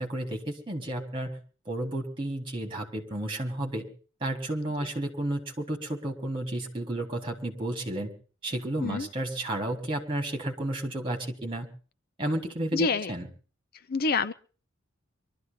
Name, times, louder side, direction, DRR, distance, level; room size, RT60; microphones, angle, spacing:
voice 1, 0.0-1.4 1.7-3.9 4.2-8.1 8.4-11.7 12.2-13.3, right 1 dB, 25° right, 3 dB, 4.1 m, -32 dB
voice 2, 12.7-13.1 13.9-14.3, left 3 dB, 50° left, 13 dB, 0.7 m, -27 dB
24.0 x 13.5 x 3.9 m, 0.39 s
head